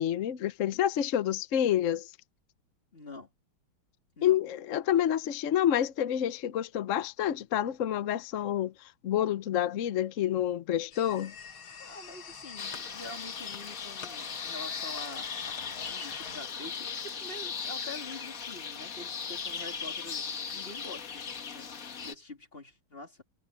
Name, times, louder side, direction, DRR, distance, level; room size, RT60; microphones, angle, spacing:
voice 1, 0.0-2.1 4.2-11.3, left 10 dB, 60° left, 0.8 m, -28 dB
voice 2, 2.9-3.3 4.2-4.4 11.8-20.3 20.5-21.7 22.0-23.2, left 2 dB, 30° left, 2.8 m, -46 dB
sound 1, 10.9-16.4, left 6 dB, 80° left, 2.5 m, -45 dB
sound 2, 12.6-22.1, left 6 dB, 45° left, 1.7 m, -38 dB
omnidirectional pair, 2.2 m